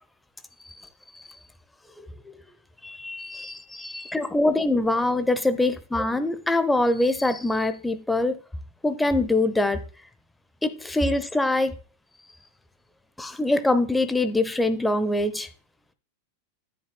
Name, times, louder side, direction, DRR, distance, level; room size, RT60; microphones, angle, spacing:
voice 1, 2.8-8.4 8.8-9.8 10.6-11.7 13.2-15.5, left 2 dB, 5° left, 10 dB, 0.8 m, -24 dB
10.5 x 9.1 x 2.3 m, 0.36 s
figure-of-eight pair, 90°, 0 cm